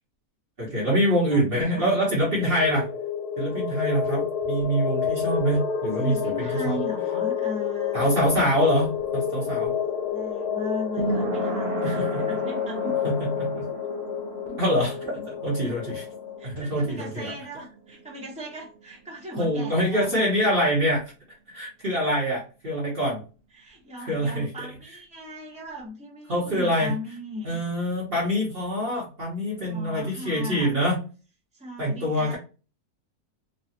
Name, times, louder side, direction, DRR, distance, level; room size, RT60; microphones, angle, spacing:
voice 1, 0.6-2.9 3.4-6.8 7.9-9.8 11.8-12.2 12.8-13.7 14.6-16.0 16.4-17.3 19.4-21.1 21.5-23.2 24.0-24.7 26.3-26.9 27.4-31.0 31.8-32.4, equal, 40° right, -4 dB, 1.1 m, -25 dB
voice 2, 1.3-2.5 6.0-8.5 10.1-13.1 15.6-15.8 16.4-20.1 22.0-22.2 23.5-27.6 29.6-30.8 31.5-32.4, left 1 dB, 5° right, -4 dB, 1.0 m, -38 dB
sound 1, 2.1-16.5, left 7 dB, 80° left, 1.4 m, -29 dB
sound 2, 7.9-19.4 19.7-19.8, right 3 dB, 65° right, 0.5 m, -36 dB
3.2 x 2.4 x 2.7 m, 0.34 s
omnidirectional pair, 1.7 m